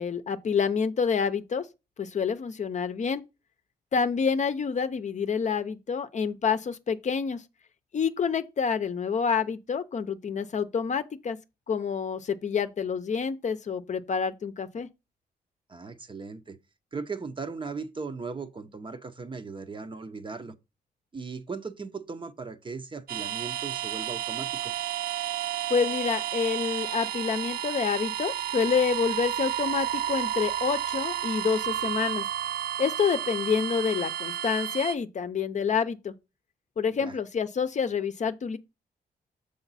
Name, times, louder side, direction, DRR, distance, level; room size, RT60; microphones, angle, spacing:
voice 1, 0.0-1.7 2.0-3.2 3.9-7.4 7.9-11.4 11.7-14.9 25.7-32.2 32.8-36.1 36.8-38.6, left 6 dB, 45° left, 0.6 m, -28 dB
voice 2, 15.7-16.6 16.9-20.5 21.1-24.7 37.0-37.1, right 4 dB, 30° right, 0.7 m, -38 dB
sound 1, 23.1-35.0, right 11 dB, 70° right, 0.5 m, -31 dB
7.1 x 5.0 x 4.0 m
wide cardioid pair, 115°, 16 cm